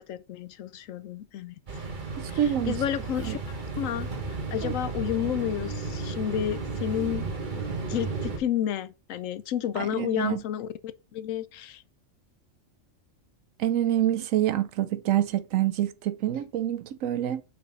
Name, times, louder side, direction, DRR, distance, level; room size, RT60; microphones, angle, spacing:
voice 1, 0.0-1.6 2.3-7.2 7.9-10.7 11.1-11.8, left 10 dB, 80° left, 1.0 m, -31 dB
sound 1, 1.7-8.4, right 3 dB, 40° right, 1.2 m, -33 dB
voice 2, 2.2-2.8 3.2-3.4 4.6-4.7 9.8-10.4 13.6-17.4, right 12 dB, 85° right, 1.0 m, -26 dB
5.1 x 4.7 x 3.9 m
omnidirectional pair, 1.3 m